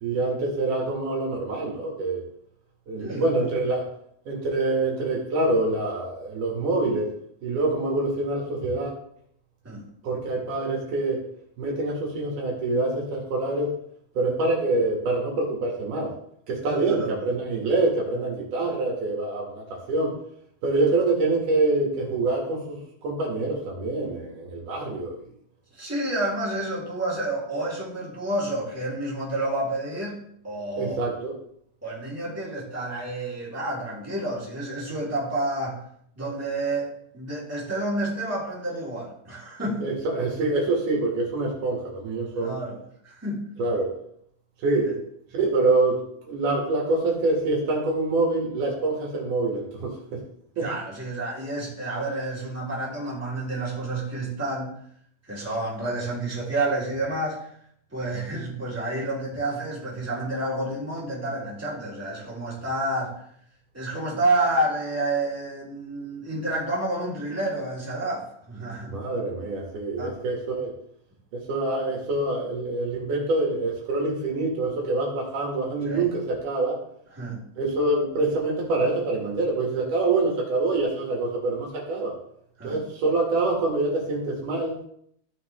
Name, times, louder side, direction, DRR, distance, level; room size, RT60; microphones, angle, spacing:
voice 1, 0.0-2.2 2.9-3.8 4.3-7.1 7.4-8.9 10.0-11.3 11.6-13.7 14.2-16.1 16.5-20.1 20.6-25.2 30.7-31.3 39.8-42.6 43.6-43.9 44.6-45.0 45.4-50.2 50.6-50.7 68.9-70.8 71.5-76.8 77.6-82.2 82.6-84.8, right 2 dB, 80° right, -2 dB, 3.7 m, -25 dB
voice 2, 3.0-3.4 9.6-9.8 16.6-17.3 25.7-30.2 30.4-31.0 31.8-35.8 36.1-39.8 42.3-43.4 44.8-44.9 50.6-54.7 55.3-57.5 57.9-63.2 63.7-69.0 70.0-70.1 75.8-76.1 77.1-77.4 82.6-82.8, right 2 dB, 5° right, -7 dB, 3.3 m, -29 dB
15.0 x 5.9 x 3.5 m, 0.68 s
omnidirectional pair, 3.6 m